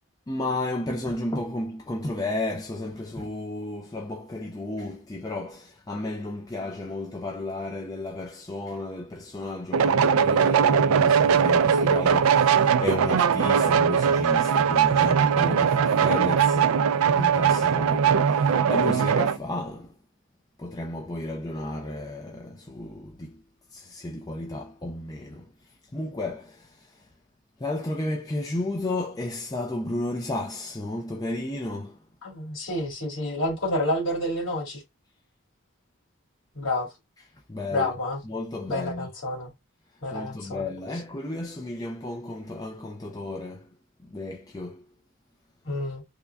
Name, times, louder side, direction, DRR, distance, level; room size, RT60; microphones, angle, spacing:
voice 1, 0.3-20.0 20.6-23.4 23.7-25.5 25.9-27.0 27.6-32.0 37.5-37.9 38.3-39.1 40.1-43.7 44.0-44.8, left 2 dB, 15° left, 0.4 m, -33 dB
sound 1, 9.7-19.4, right 7 dB, 85° right, 0.3 m, -20 dB
voice 2, 32.2-34.8 36.5-36.9 37.7-38.2 38.7-39.5 40.0-40.7 45.6-46.0, left 1 dB, 65° left, 2.2 m, -29 dB
3.6 x 2.2 x 3.3 m
head